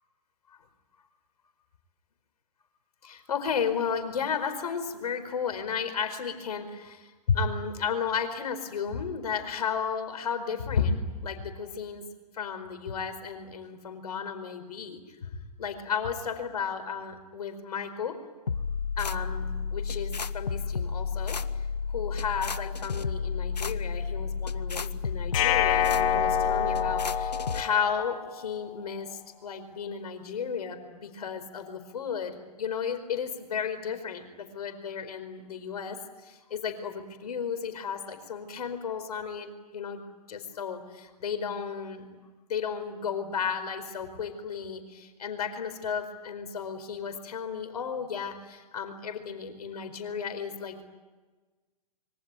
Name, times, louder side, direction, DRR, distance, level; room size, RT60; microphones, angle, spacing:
voice 1, 3.0-12.0 12.3-18.2 19.0-21.4 21.9-36.0 36.2-42.1 42.5-50.8, left 6 dB, 70° left, 8 dB, 4.7 m, -33 dB
sound 1, 18.5-27.6, left 5 dB, 90° left, 1.2 m, -32 dB
sound 2, 25.3-28.4, left 9 dB, 50° left, 2.8 m, -27 dB
26.5 x 23.5 x 9.2 m, 1.3 s
hypercardioid pair, 120°, 21 cm